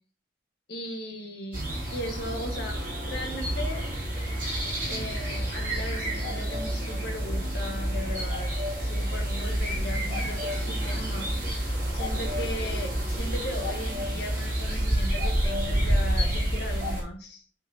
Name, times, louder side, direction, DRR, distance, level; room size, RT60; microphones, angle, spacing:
voice 1, 0.7-1.6 1.9-3.9 4.9-8.5 8.8-11.6 11.9-17.4, left 1 dB, 60° left, 1 dB, 1.7 m, -37 dB
sound 1, 1.5-17.0, right 1 dB, 45° right, 3.3 m, -29 dB
8.4 x 3.9 x 2.9 m, 0.42 s
head